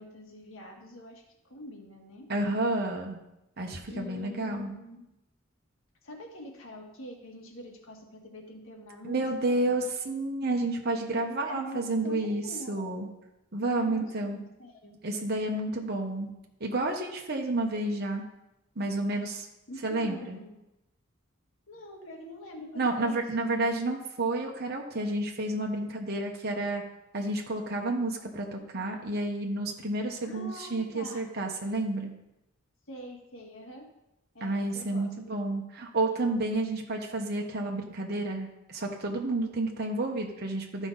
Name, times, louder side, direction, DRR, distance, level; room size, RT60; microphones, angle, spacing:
voice 1, 0.0-2.3 3.9-5.1 6.0-9.7 11.5-12.9 13.7-15.0 19.7-20.6 21.7-23.5 30.2-31.3 32.9-33.8 34.3-35.1, left 1 dB, 80° left, 1 dB, 1.8 m, -45 dB
voice 2, 2.3-3.2 3.6-4.7 9.0-13.1 13.5-14.4 15.0-16.3 16.6-18.2 18.8-19.5 19.8-20.4 22.7-26.8 27.1-32.1 34.4-40.9, right 2 dB, 55° right, 1 dB, 1.1 m, -30 dB
13.0 x 5.0 x 4.0 m, 0.91 s
head